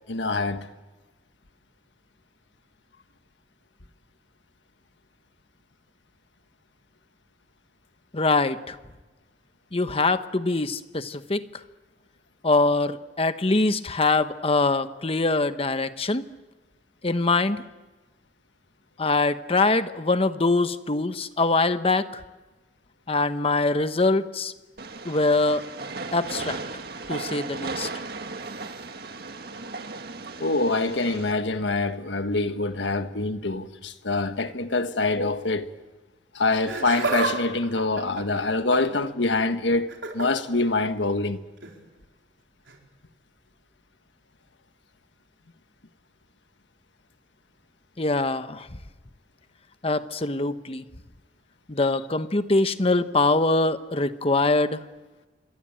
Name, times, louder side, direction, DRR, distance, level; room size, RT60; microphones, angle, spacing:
voice 1, 0.1-0.7 30.4-35.7 36.3-41.4, left 3 dB, 80° left, 1.5 m, -25 dB
voice 2, 8.1-8.8 9.7-11.4 12.4-16.3 17.0-17.6 19.0-22.1 23.1-24.5 25.0-25.6 26.1-26.6 27.1-27.9 48.0-48.7 49.8-50.8 51.7-54.8, left 3 dB, 30° left, 1.1 m, -23 dB
Train, 24.8-31.3, right 3 dB, 60° right, 1.8 m, -36 dB
Laughter, 36.5-37.3 37.6-39.0 39.9-40.3 41.6-41.8 42.7-42.8, right 3 dB, 90° right, 4.4 m, -29 dB
27.0 x 23.0 x 8.9 m
head